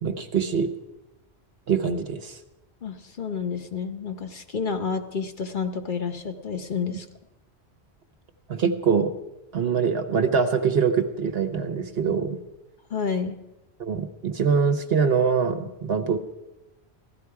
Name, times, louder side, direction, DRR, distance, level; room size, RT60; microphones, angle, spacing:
voice 1, 0.0-0.7 1.7-2.4 8.5-9.1 9.5-12.4 13.8-16.2, right 6 dB, 65° right, 8 dB, 1.2 m, -23 dB
voice 2, 2.8-7.1 12.9-13.4, left 5 dB, 50° left, 7 dB, 0.9 m, -30 dB
15.5 x 12.5 x 4.7 m, 0.98 s
omnidirectional pair, 1.1 m